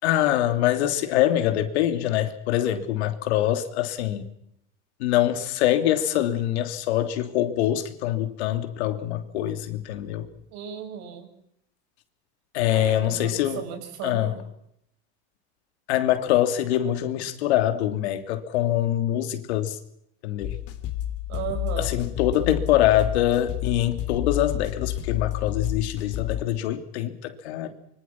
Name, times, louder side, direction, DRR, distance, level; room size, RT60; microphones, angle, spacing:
voice 1, 0.0-4.3 5.0-10.3 12.5-13.6 14.0-14.3 15.9-19.8 20.2-20.6 21.8-27.7, left 12 dB, 80° left, 8 dB, 3.2 m, -24 dB
voice 2, 10.5-11.3 12.7-14.4 21.3-22.0, right 8 dB, 55° right, 7 dB, 7.0 m, -35 dB
sound 1, 20.4-26.4, left 12 dB, 45° left, 3.3 m, -30 dB
25.0 x 24.5 x 6.0 m, 0.76 s
supercardioid pair, 125°, 32 cm